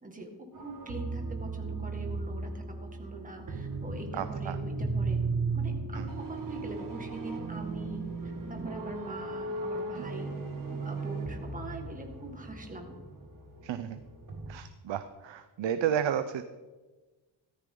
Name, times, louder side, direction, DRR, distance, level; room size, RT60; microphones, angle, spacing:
voice 1, 0.0-5.2 5.5-8.0 8.5-10.3 10.7-12.9, right 2 dB, 15° right, 3 dB, 2.0 m, -43 dB
sound 1, 0.5-14.5, right 3 dB, 45° right, 1.8 m, -36 dB
voice 2, 4.1-4.6 5.9-6.0 13.6-14.0 14.5-16.4, right 9 dB, 70° right, 10 dB, 0.7 m, -32 dB
14.0 x 13.0 x 3.9 m, 1.3 s
cardioid pair, 130°, 47 cm